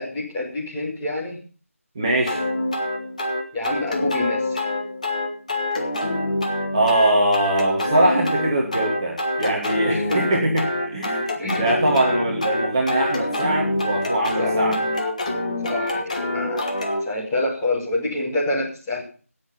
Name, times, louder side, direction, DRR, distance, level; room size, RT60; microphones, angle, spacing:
voice 1, 0.0-1.4 3.5-4.6 9.9-10.4 11.4-11.7 14.4-14.6 15.7-16.0 16.3-16.8 17.0-19.0, left 2 dB, 10° left, -6 dB, 2.2 m, -27 dB
voice 2, 1.9-2.4 6.7-10.7 10.9-11.2 11.6-14.8, right 1 dB, 20° right, -2 dB, 1.5 m, -22 dB
sound 1, 2.3-17.0, left 1 dB, 30° left, 1.6 m, -25 dB
17.0 x 6.5 x 5.6 m, 0.38 s
figure-of-eight pair, 165°, 8 cm